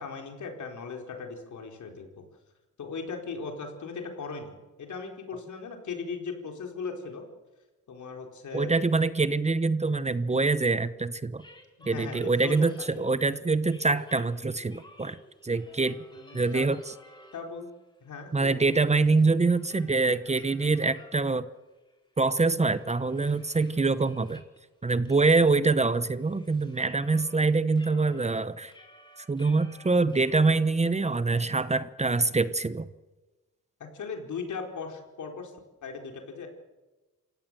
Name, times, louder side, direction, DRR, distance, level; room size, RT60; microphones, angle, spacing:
voice 1, 0.0-2.2 2.8-7.3 7.9-8.7 11.8-12.7 13.0-13.1 16.1-16.6 17.3-17.7 18.0-18.8 33.8-35.5 35.8-36.5, left 5 dB, 75° left, 3 dB, 4.4 m, -38 dB
voice 2, 8.5-11.4 11.9-15.2 15.4-16.0 16.3-16.8 18.3-21.5 22.2-24.4 24.8-28.7 29.3-32.9, right 3 dB, 20° right, 14 dB, 0.9 m, -25 dB
sound 1, 11.4-13.2 13.7-17.7 18.0-21.5 21.9-22.0 22.4-24.6 25.0-25.2 25.4-27.4 27.7-30.7, equal, 15° left, 5.2 m, -54 dB
27.5 x 16.5 x 7.6 m, 1.2 s
cardioid pair, 90°, 30 cm